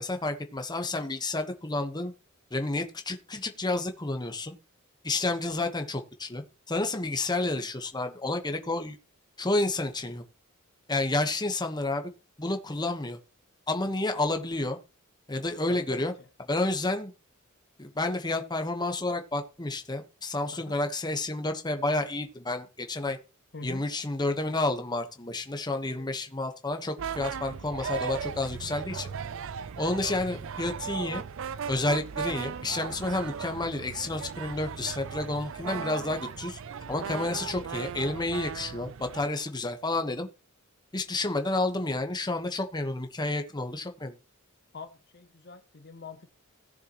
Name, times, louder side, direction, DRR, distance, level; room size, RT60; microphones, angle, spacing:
voice 1, 0.0-2.1 2.5-4.5 5.0-9.0 9.4-10.2 10.9-12.1 12.4-13.2 13.7-14.8 15.3-16.1 16.5-17.1 17.8-23.2 23.6-29.1 29.8-31.2 31.7-36.6 36.9-40.3 40.9-44.1, left 2 dB, 20° left, 1.1 m, -30 dB
voice 2, 15.6-16.3 20.5-20.8 23.5-23.8 26.0-26.1 29.0-29.2 35.7-35.9 44.7-46.3, left 3 dB, 50° left, 0.8 m, -44 dB
sound 1, 27.0-39.3, right 6 dB, 65° right, 0.4 m, -37 dB
17.5 x 6.7 x 3.0 m
head